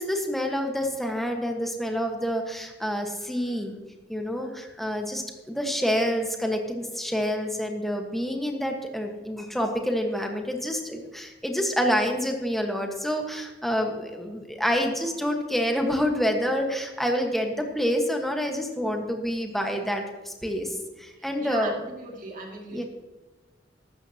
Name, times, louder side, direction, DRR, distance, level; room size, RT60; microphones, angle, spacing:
voice 1, 0.0-3.7 4.1-20.7 21.0-21.7 22.7-22.8, equal, ahead, 2 dB, 1.4 m, -27 dB
voice 2, 21.4-22.8, right 3 dB, 50° right, 0 dB, 2.4 m, -38 dB
15.0 x 12.0 x 2.9 m, 1.2 s
head